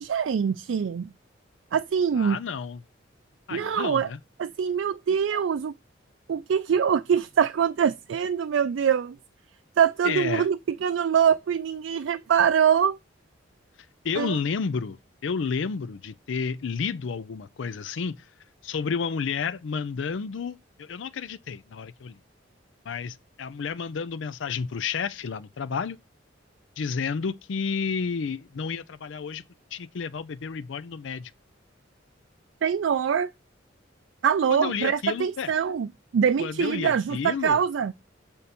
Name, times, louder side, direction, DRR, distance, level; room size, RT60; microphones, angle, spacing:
voice 1, 0.0-1.1 1.7-2.4 3.5-4.1 4.4-5.7 6.3-9.2 9.8-13.0 14.2-14.4 32.6-33.3 34.2-35.9 36.1-37.9, right 7 dB, 75° right, 0.4 m, -24 dB
voice 2, 2.2-2.8 3.5-4.2 10.0-10.5 14.0-18.3 18.6-22.2 22.9-26.0 26.8-29.4 29.7-31.3 34.5-35.5 36.4-37.6, left 5 dB, 75° left, 0.4 m, -31 dB
6.7 x 3.5 x 4.2 m
head